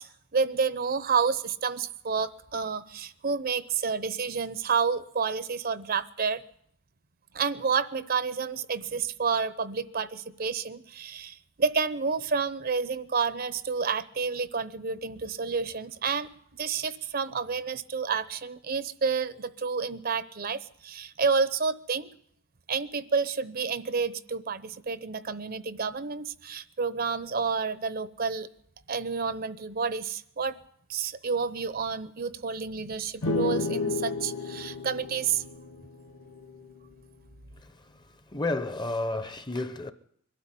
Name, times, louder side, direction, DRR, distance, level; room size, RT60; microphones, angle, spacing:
voice 1, 0.0-6.4 7.3-22.1 22.7-28.5 28.9-30.6 30.9-35.4, right 5 dB, 45° right, 0.7 m, -30 dB
sound 1, 33.2-36.8, left 3 dB, 75° left, 2.1 m, -32 dB
voice 2, 37.5-39.9, left 2 dB, 20° left, 0.9 m, -32 dB
22.5 x 13.0 x 9.8 m
head